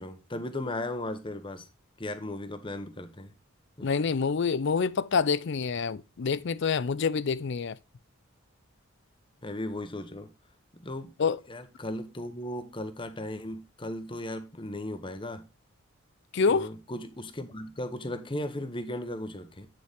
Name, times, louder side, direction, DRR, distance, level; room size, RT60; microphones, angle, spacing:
voice 1, 0.0-1.7 2.0-3.3 3.8-3.9 9.4-10.3 10.8-11.1 11.5-15.4 16.5-19.7, left 1 dB, 25° left, 1.0 m, -36 dB
voice 2, 3.8-7.8 11.2-11.4 16.3-16.7, left 5 dB, 55° left, 0.4 m, -27 dB
8.9 x 6.5 x 3.5 m
head